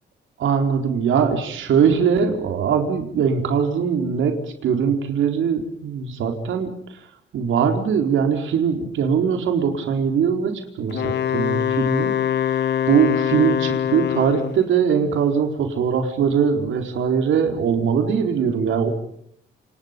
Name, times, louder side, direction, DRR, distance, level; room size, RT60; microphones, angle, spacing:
voice 1, 0.4-4.3 4.6-7.0 7.3-12.1 12.9-18.9, right 7 dB, 90° right, 5 dB, 4.3 m, -21 dB
Wind instrument woodwind instrument, 10.9-14.6, left 9 dB, 60° left, 1.2 m, -23 dB
29.0 x 28.5 x 5.3 m, 0.69 s
wide cardioid pair, 175°, 20 cm